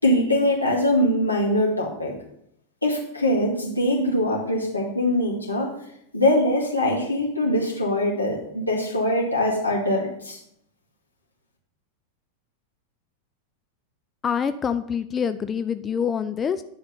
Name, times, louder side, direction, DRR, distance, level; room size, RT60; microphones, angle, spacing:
voice 1, 0.0-2.1 2.8-5.7 6.1-10.4, left 1 dB, 85° left, -2 dB, 2.0 m, -22 dB
voice 2, 14.2-16.6, left 7 dB, 20° left, 11 dB, 0.4 m, -26 dB
10.0 x 4.1 x 6.8 m, 0.74 s
figure-of-eight pair, 90°, 0 cm